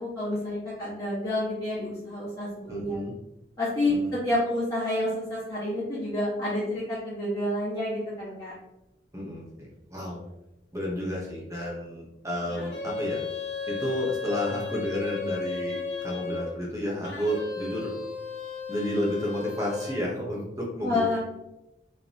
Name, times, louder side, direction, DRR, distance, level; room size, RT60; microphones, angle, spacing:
voice 1, 0.0-3.0 3.6-4.0 4.2-8.5 20.8-21.2, left 1 dB, 20° left, -12 dB, 1.7 m, -29 dB
voice 2, 2.7-3.1 3.9-4.1 9.1-10.2 10.7-13.2 13.7-17.9 18.7-21.2, left 1 dB, 15° right, -3 dB, 1.1 m, -31 dB
sound 1, 12.5-16.5 17.0-20.1, left 4 dB, 75° left, 0.9 m, -35 dB
4.9 x 3.4 x 3.0 m, 0.90 s
head